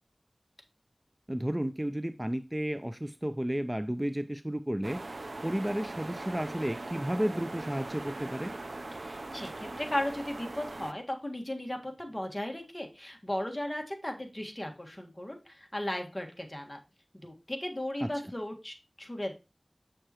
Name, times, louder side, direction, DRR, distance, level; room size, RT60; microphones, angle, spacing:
voice 1, 1.3-5.0 5.4-8.5 18.0-18.1, equal, 15° right, 10 dB, 0.5 m, -32 dB
sound 1, 4.8-10.9, right 2 dB, 75° right, 0.6 m, -40 dB
voice 2, 9.0-16.8 17.2-19.3, left 1 dB, 20° left, 3 dB, 1.6 m, -36 dB
7.5 x 6.7 x 2.9 m, 0.29 s
wide cardioid pair, 55°, 0 cm